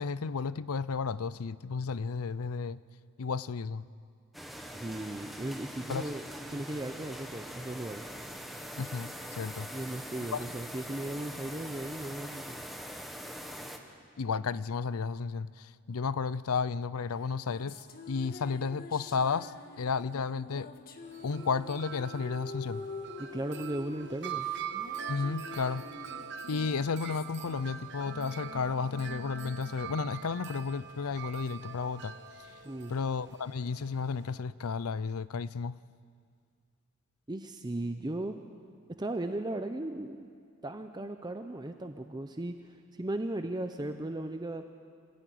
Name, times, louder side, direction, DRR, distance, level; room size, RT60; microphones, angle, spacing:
voice 1, 0.0-2.8 3.2-3.9 5.9-6.0 8.8-9.7 10.3-10.4 14.2-19.5 19.8-20.7 21.2-22.9 25.1-25.9 26.5-32.2 32.9-35.8, left 5 dB, 85° left, 18 dB, 0.5 m, -33 dB
sound 1, 4.3-13.8, equal, ahead, 1.4 m, -43 dB
voice 2, 4.7-6.3 6.5-8.0 9.7-12.6 23.2-24.5 32.6-32.9 37.3-38.4 39.0-40.3 40.6-44.6, right 1 dB, 20° right, 7 dB, 0.7 m, -37 dB
sound 2, 17.2-30.8, left 3 dB, 45° left, 1.6 m, -47 dB
Wind chime, 21.1-34.4, right 8 dB, 55° right, 1.0 m, -43 dB
26.0 x 15.0 x 9.4 m, 2.2 s
head